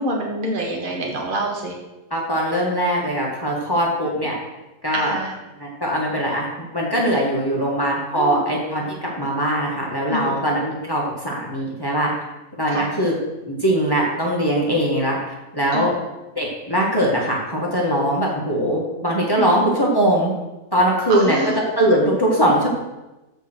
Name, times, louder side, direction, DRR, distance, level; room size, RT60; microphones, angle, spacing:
voice 1, 0.0-1.7 4.9-5.3 8.1-8.4 10.1-10.4 12.7-12.9 15.7-15.9 19.4-19.6 21.1-21.6, right 1 dB, 35° right, -1 dB, 1.7 m, -26 dB
voice 2, 2.1-4.3 4.8-5.1 5.6-12.1 12.6-13.1 13.5-15.2 15.5-15.9 16.4-20.3 20.7-21.4 21.8-22.7, right 1 dB, 15° left, -3 dB, 1.9 m, -21 dB
13.0 x 4.5 x 6.3 m, 1.0 s
omnidirectional pair, 1.5 m